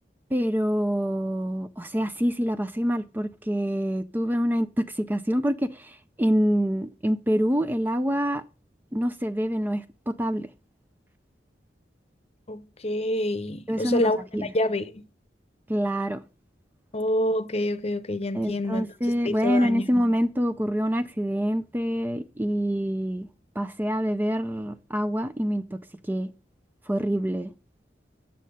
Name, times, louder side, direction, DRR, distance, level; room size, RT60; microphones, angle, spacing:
voice 1, 0.3-8.4 8.9-10.5 13.7-14.5 15.7-16.2 18.3-23.3 23.6-25.8 26.1-26.3 26.9-27.5, equal, 10° right, 0.4 m, -26 dB
voice 2, 12.5-15.0 16.9-18.9 19.2-19.8, left 1 dB, 35° left, 0.8 m, -27 dB
8.5 x 7.4 x 5.5 m
head